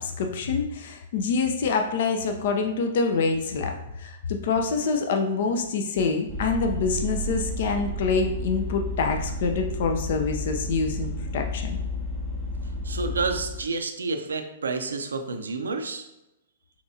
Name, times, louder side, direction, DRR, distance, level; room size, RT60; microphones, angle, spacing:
voice 1, 0.0-11.8, left 4 dB, 60° left, 4 dB, 0.6 m, -26 dB
Vehicle, 6.3-13.6, left 1 dB, 30° left, 1.5 m, -31 dB
voice 2, 12.8-16.1, right 4 dB, 80° right, 6 dB, 0.5 m, -29 dB
5.8 x 3.1 x 2.7 m, 0.91 s
hypercardioid pair, 115°, 0 cm